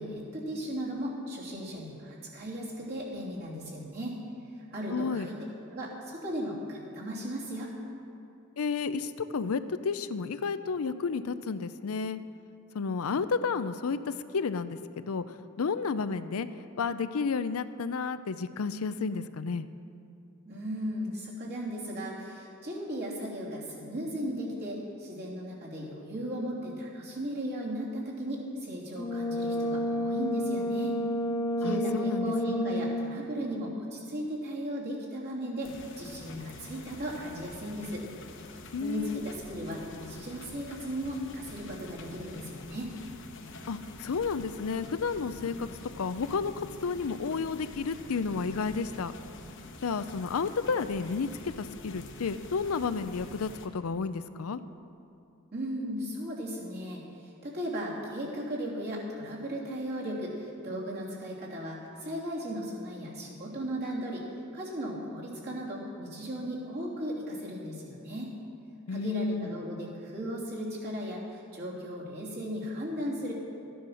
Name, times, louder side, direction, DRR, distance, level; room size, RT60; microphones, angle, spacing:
voice 1, 0.0-4.2 4.7-5.4 5.7-7.7 20.4-30.9 31.6-38.0 38.8-42.9 55.5-57.0 57.4-64.2 64.5-68.3 68.9-73.3, equal, 50° right, -5 dB, 3.0 m, -36 dB
voice 2, 4.9-5.3 8.6-12.2 12.7-15.2 15.6-16.5 16.8-19.7 31.6-32.3 38.7-39.2 43.7-45.7 46.0-49.1 49.8-54.6 68.9-69.5, left 5 dB, 75° left, 12 dB, 0.5 m, -31 dB
Brass instrument, 28.9-33.3, left 1 dB, 15° left, 0.8 m, -30 dB
sound 1, 35.6-53.7, left 2 dB, 55° left, 1.1 m, -46 dB
14.0 x 10.0 x 6.3 m, 2.6 s
head